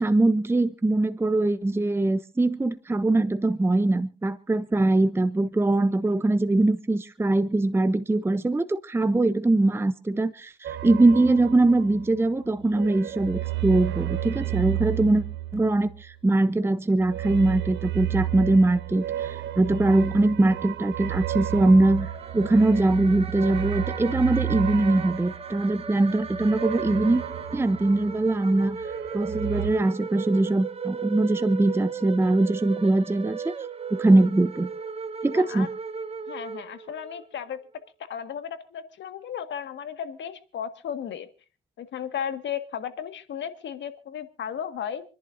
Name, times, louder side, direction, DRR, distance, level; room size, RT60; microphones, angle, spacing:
voice 1, 0.0-15.2 15.5-27.2 27.5-28.8 29.1-33.5 33.9-34.7 35.2-35.7, right 2 dB, 10° right, 13 dB, 0.7 m, -22 dB
sound 1, 10.6-12.3 12.6-16.1 17.0-28.4 28.7-29.7, right 13 dB, 65° right, 1.0 m, -32 dB
sound 2, 22.0-37.2, right 5 dB, 30° right, 1.1 m, -36 dB
voice 2, 35.3-35.7 36.3-37.6 38.1-41.3 41.8-45.0, left 8 dB, 65° left, 9 dB, 1.7 m, -34 dB
27.5 x 11.0 x 2.6 m, 0.34 s
cardioid pair, 90°, 20 cm